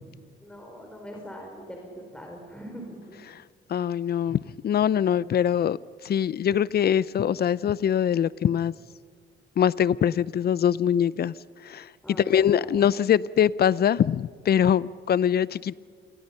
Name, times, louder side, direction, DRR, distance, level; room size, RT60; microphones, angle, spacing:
voice 1, 0.4-3.2 12.0-12.8, equal, 5° left, 1 dB, 4.5 m, -42 dB
voice 2, 3.7-5.8 6.0-8.7 9.6-11.3 11.6-11.9 12.3-15.7, left 9 dB, 55° left, 20 dB, 0.7 m, -23 dB
27.5 x 21.5 x 5.7 m, 2.1 s
cardioid pair, 90°, 20 cm